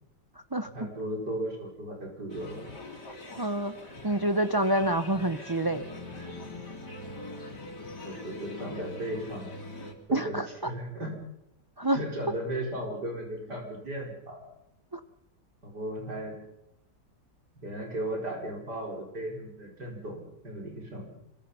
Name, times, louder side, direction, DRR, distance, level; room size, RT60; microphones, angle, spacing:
voice 1, 0.7-2.7 8.0-9.5 10.1-11.2 11.9-14.4 15.6-16.4 17.6-21.1, right 1 dB, 70° right, 0 dB, 5.8 m, -36 dB
sound 1, 2.3-9.9, left 2 dB, 70° left, 4.2 m, -43 dB
voice 2, 3.4-3.7 4.0-5.8 10.1-10.5 11.8-12.0 14.9-15.0, right 1 dB, 20° right, 9 dB, 0.6 m, -27 dB
26.5 x 23.0 x 5.7 m, 0.81 s
omnidirectional pair, 1.9 m